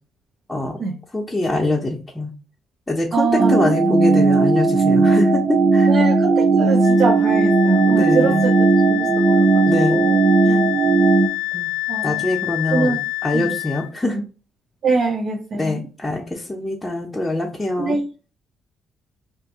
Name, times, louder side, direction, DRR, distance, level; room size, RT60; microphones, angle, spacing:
voice 1, 1.1-2.3 2.9-5.9 7.8-8.4 9.7-10.0 10.4-10.6 11.5-11.7 12.0-14.2 15.5-18.0, left 2 dB, 15° left, -2 dB, 0.6 m, -24 dB
voice 2, 3.1-3.7 5.9-10.3 11.9-12.3 12.7-13.0 13.3-13.6 14.8-15.8 17.8-18.1, right 4 dB, 60° right, 4 dB, 0.4 m, -23 dB
sound 1, 3.4-11.3, right 3 dB, 35° right, 0.8 m, -16 dB
Wind instrument woodwind instrument, 6.8-13.9, left 20 dB, 90° left, 0.4 m, -28 dB
2.6 x 2.5 x 3.6 m, 0.34 s
cardioid pair, 90°, 0 cm